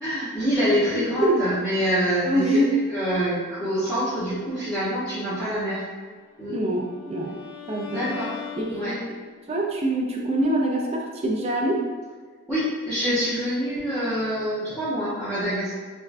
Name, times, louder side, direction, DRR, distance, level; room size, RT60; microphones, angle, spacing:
voice 1, 0.0-2.6 2.9-5.8 6.4-6.6 7.9-8.4 8.7-9.0 12.5-15.7, equal, 5° left, -15 dB, 0.7 m, -26 dB
voice 2, 1.0-1.4 2.2-2.7 6.5-7.3 7.7-8.2 8.6-9.1 9.5-11.8, right 1 dB, 30° right, -2 dB, 0.4 m, -25 dB
Bowed string instrument, 6.3-9.4, left 9 dB, 70° left, 0.4 m, -40 dB
3.4 x 2.1 x 2.5 m, 1.5 s
head